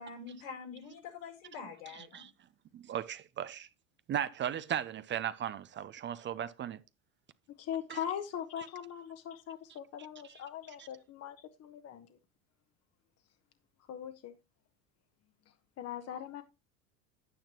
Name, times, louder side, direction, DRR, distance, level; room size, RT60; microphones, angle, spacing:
voice 1, 0.0-2.3, left 5 dB, 80° left, 4.3 m, -45 dB
voice 2, 1.9-2.3 2.7-3.7 4.1-6.8 7.9-8.0, right 10 dB, 30° right, 0.5 m, -36 dB
voice 3, 7.6-12.2 13.9-14.4 15.5-16.4, left 9 dB, 40° left, 1.1 m, -41 dB
10.0 x 9.3 x 3.0 m
hypercardioid pair, 85°, 39 cm